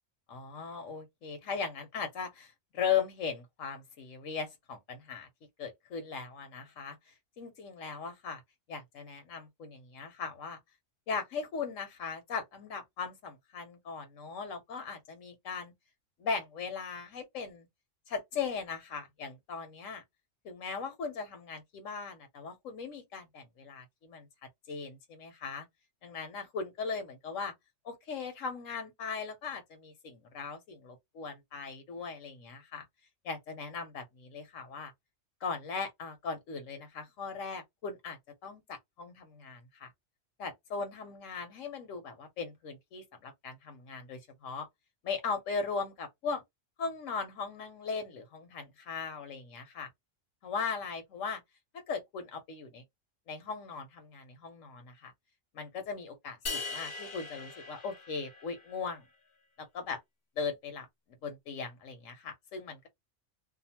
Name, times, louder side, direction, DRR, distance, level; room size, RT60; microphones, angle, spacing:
voice 1, 0.3-5.3 5.6-8.4 8.7-10.6 11.1-15.7 16.2-17.7 18.1-20.0 20.4-24.3 24.7-25.7 26.0-27.5 27.8-32.8 33.2-34.9 35.4-39.9 40.4-44.7 45.0-46.4 46.8-49.9 50.4-51.4 51.9-52.8 53.3-55.1 55.5-59.0 59.6-60.0 60.4-60.9 61.2-62.9, left 5 dB, 85° left, 1.2 m, -38 dB
sound 1, 56.5-58.8, left 4 dB, 50° left, 0.8 m, -40 dB
2.5 x 2.4 x 2.8 m
omnidirectional pair, 1.3 m